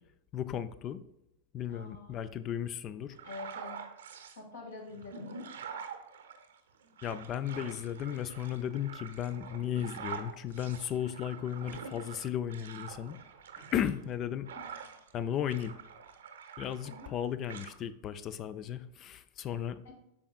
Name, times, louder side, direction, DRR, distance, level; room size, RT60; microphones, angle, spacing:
voice 1, 0.3-1.0 1.5-3.2 7.0-13.2 13.7-14.5 15.1-15.7 16.6-19.8, left 10 dB, 30° left, 14 dB, 0.4 m, -35 dB
voice 2, 1.7-2.1 3.2-3.8 4.4-5.5 14.6-14.7 16.9-17.1 19.8-19.9, left 3 dB, 65° left, -1 dB, 2.3 m, -46 dB
sound 1, 3.1-4.4 4.9-15.1 15.4-17.2 17.5-17.7, right 6 dB, 65° right, 0.8 m, -46 dB
8.4 x 6.0 x 2.4 m, 0.84 s
figure-of-eight pair, 90°, 0 cm